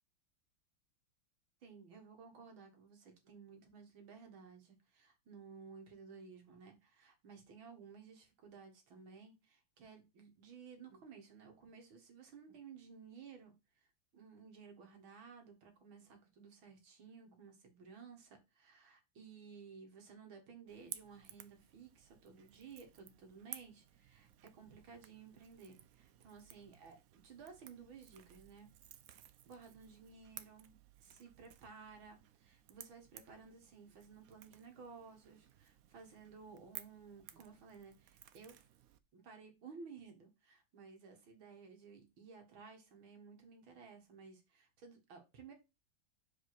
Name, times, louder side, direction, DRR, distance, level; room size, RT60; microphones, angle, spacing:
voice 1, 1.6-13.9 14.1-28.7 29.5-38.7 39.1-45.5, right 5 dB, 70° right, 2.5 m, -56 dB
Crackle / Crack, 20.7-39.0, right 11 dB, 90° right, 0.7 m, -57 dB
5.0 x 4.9 x 6.0 m
omnidirectional pair, 2.3 m